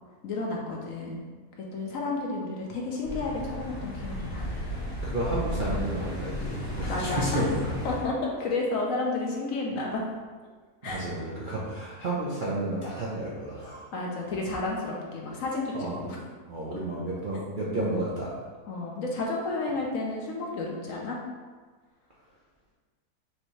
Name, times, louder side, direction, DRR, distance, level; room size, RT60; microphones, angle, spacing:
voice 1, 0.2-1.2 1.7-4.4 6.8-7.5 7.8-10.0 10.8-11.0 13.9-16.2 18.7-21.2, left 3 dB, 65° left, -2 dB, 1.0 m, -31 dB
sound 1, 3.0-8.1, equal, 45° left, 1.9 m, -34 dB
voice 2, 5.0-7.8 10.8-13.8 15.7-16.0 16.5-18.4, right 1 dB, 50° right, -7 dB, 0.6 m, -32 dB
6.1 x 2.6 x 3.1 m, 1.4 s
omnidirectional pair, 1.7 m